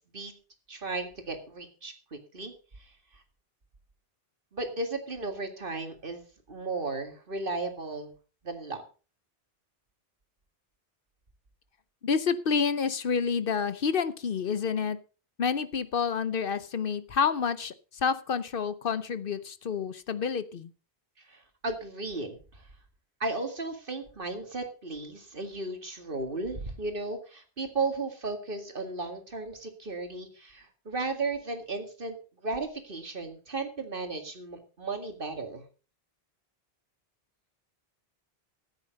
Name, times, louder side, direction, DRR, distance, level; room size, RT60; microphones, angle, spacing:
voice 1, 0.7-2.5 2.8-2.9 4.5-8.1 8.4-8.8 21.3-22.6 23.2-32.2 32.4-35.7, right 3 dB, 55° right, 6 dB, 2.3 m, -35 dB
voice 2, 12.0-15.0 15.4-20.7, left 6 dB, 60° left, 14 dB, 0.9 m, -29 dB
14.0 x 9.1 x 5.2 m, 0.36 s
omnidirectional pair, 1.1 m